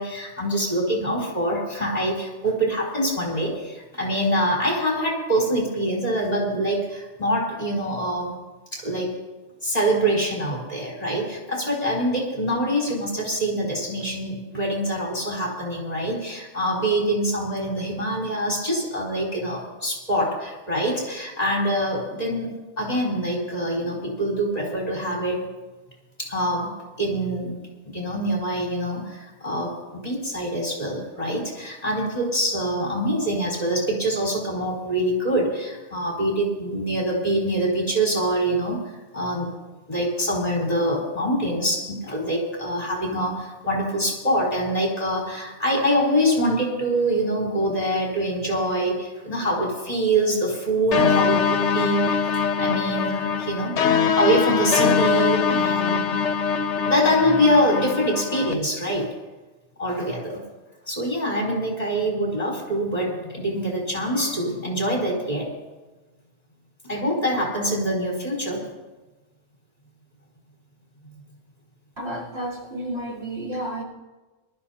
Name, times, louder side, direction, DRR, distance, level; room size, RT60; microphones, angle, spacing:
voice 1, 0.0-8.4 8.7-9.2 9.6-25.4 26.2-38.8 39.1-39.5 39.9-52.3 52.6-53.8 54.1-56.1 56.9-59.1 59.8-60.4 60.9-65.5 66.9-68.7, right 1 dB, 35° left, -3 dB, 4.7 m, -25 dB
sound 1, 50.9-58.5, left 6 dB, 75° left, 1.1 m, -22 dB
voice 2, 72.0-73.8, right 1 dB, 65° right, -4 dB, 4.1 m, -31 dB
24.0 x 13.5 x 2.9 m, 1.2 s
omnidirectional pair, 1.2 m